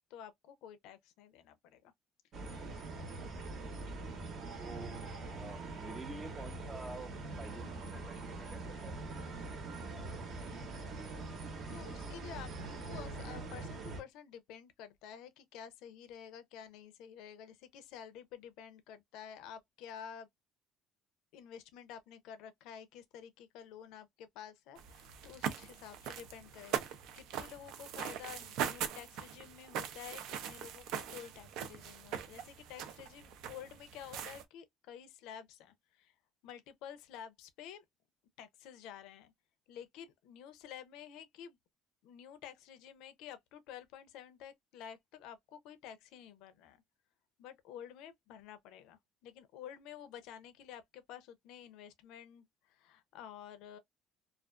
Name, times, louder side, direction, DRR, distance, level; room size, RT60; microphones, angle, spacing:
voice 1, 0.1-1.9 4.5-5.0 11.3-12.5 12.8-20.3 21.3-30.2 30.5-36.1 36.4-37.8 38.4-39.3 39.7-41.6 42.0-46.8 47.4-53.8, left 9 dB, 80° left, 0.5 m, -51 dB
sound 1, 2.3-14.0, right 3 dB, 45° right, 0.8 m, -43 dB
voice 2, 3.2-3.7 4.6-9.2, right 3 dB, 20° right, 0.5 m, -49 dB
sound 2, 24.8-34.4, right 9 dB, 75° right, 0.5 m, -41 dB
2.4 x 2.3 x 2.2 m
cardioid pair, 120°, 0 cm